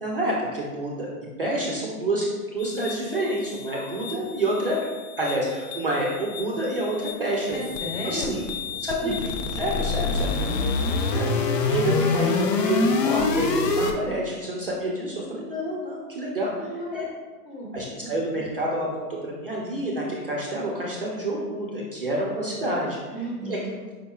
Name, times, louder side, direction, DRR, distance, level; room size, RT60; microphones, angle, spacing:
voice 1, 0.0-1.1 1.4-2.3 2.5-4.8 5.2-7.6 8.0-8.4 8.8-9.3 9.6-11.3 11.7-16.5 16.9-17.1 17.7-23.0 23.4-23.6, right 1 dB, 40° right, -3 dB, 0.4 m, -28 dB
sound 1, 2.6-13.9, left 4 dB, 85° left, 0.7 m, -27 dB
voice 2, 7.5-8.4 9.0-9.1 11.3-12.0 16.5-17.0 17.5-18.1 23.1-23.7, equal, 40° left, -2 dB, 1.0 m, -35 dB
5.1 x 4.2 x 2.3 m, 1.4 s
hypercardioid pair, 175°, 48 cm